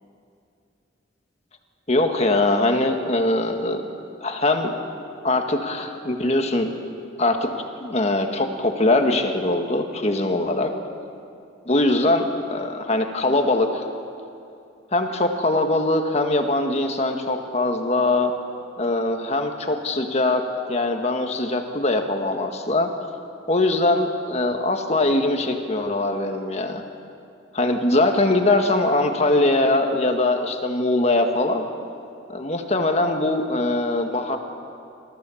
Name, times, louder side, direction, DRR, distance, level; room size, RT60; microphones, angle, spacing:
voice 1, 1.9-3.8 4.2-4.7 5.2-6.7 7.2-7.5 7.8-10.7 11.7-13.8 14.9-18.3 18.8-22.9 23.5-26.8 27.5-31.6 32.3-34.4, left 2 dB, 35° left, 4 dB, 1.6 m, -22 dB
26.5 x 15.0 x 7.1 m, 2.5 s
head